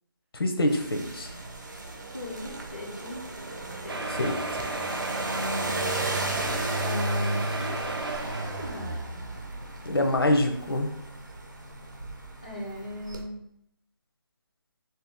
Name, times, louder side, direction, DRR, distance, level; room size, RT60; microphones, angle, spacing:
voice 1, 0.3-1.4 4.2-4.3 9.8-10.9, left 1 dB, 75° left, 4 dB, 0.8 m, -25 dB
sound 1, 0.7-13.2, right 1 dB, 50° right, 0.7 m, -34 dB
voice 2, 2.1-3.3 3.6-4.6 5.3-6.0 6.8-9.2 12.4-13.4, left 1 dB, 15° left, -5 dB, 0.4 m, -39 dB
sound 2, 3.9-9.3 10.0-10.1 10.3-10.4 10.8-10.9, right 2 dB, 85° right, 0.6 m, -34 dB
3.3 x 2.9 x 3.5 m, 0.74 s
figure-of-eight pair, 180°, 12 cm